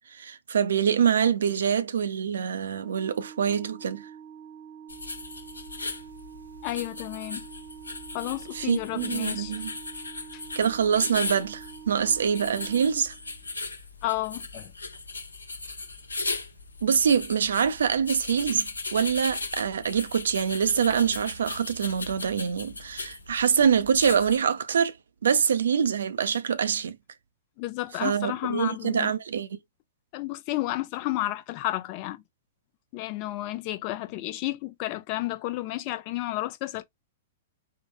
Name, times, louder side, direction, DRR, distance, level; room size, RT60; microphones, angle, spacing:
voice 1, 0.1-4.0 8.5-9.7 10.6-13.1 16.8-24.9 25.2-27.0 28.0-29.5, right 7 dB, 75° right, 0.4 m, -25 dB
Organ, 2.7-13.6, right 8 dB, 25° right, 0.6 m, -46 dB
sound 1, 4.9-24.4, left 3 dB, 90° left, 0.7 m, -37 dB
voice 2, 6.6-7.5 8.1-9.7 10.3-10.4 14.0-14.7 27.6-29.1 30.1-32.2 32.9-36.8, left 17 dB, 45° left, 0.5 m, -32 dB
3.8 x 2.1 x 2.4 m
hypercardioid pair, 110°, 0 cm